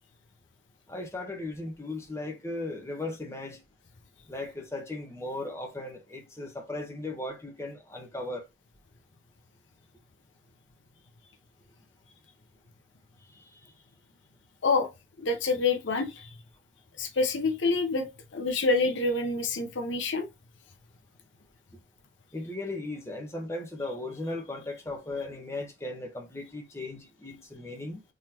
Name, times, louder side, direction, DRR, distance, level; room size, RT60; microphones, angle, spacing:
voice 1, 0.9-3.6 4.3-8.4 22.3-28.0, left 2 dB, 15° left, 1.0 m, -37 dB
voice 2, 15.2-16.3 17.0-18.1 18.3-20.3, left 3 dB, 85° left, 0.7 m, -27 dB
3.8 x 3.0 x 2.8 m
head